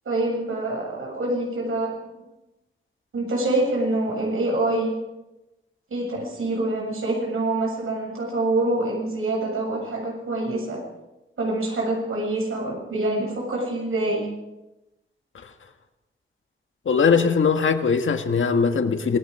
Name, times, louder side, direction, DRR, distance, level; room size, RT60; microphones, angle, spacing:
voice 1, 0.1-1.9 3.1-4.9 5.9-10.8 11.4-14.3, right 2 dB, 90° right, 7.5 m, -25 dB
voice 2, 16.9-19.2, left 5 dB, 70° left, 1.8 m, -20 dB
26.5 x 19.5 x 5.0 m
wide cardioid pair, 175°, 21 cm